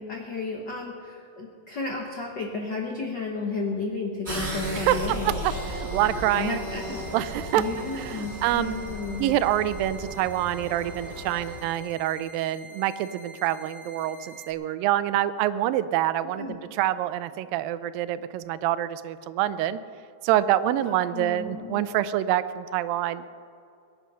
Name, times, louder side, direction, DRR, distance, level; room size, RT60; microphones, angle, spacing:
voice 1, 0.0-5.3 6.3-7.0 7.5-9.4 16.4-16.6 20.8-21.8, left 4 dB, 80° left, 1 dB, 1.0 m, -33 dB
sound 1, 4.2-11.6, right 1 dB, 15° right, 2.3 m, -35 dB
voice 2, 5.2-6.7 7.1-7.6 7.9-8.7 9.2-19.8 20.2-23.2, right 13 dB, 90° right, 14 dB, 2.3 m, -26 dB
sound 2, 5.5-14.5, right 1 dB, 45° left, 2.0 m, -47 dB
22.0 x 9.8 x 5.6 m, 2.6 s
omnidirectional pair, 4.0 m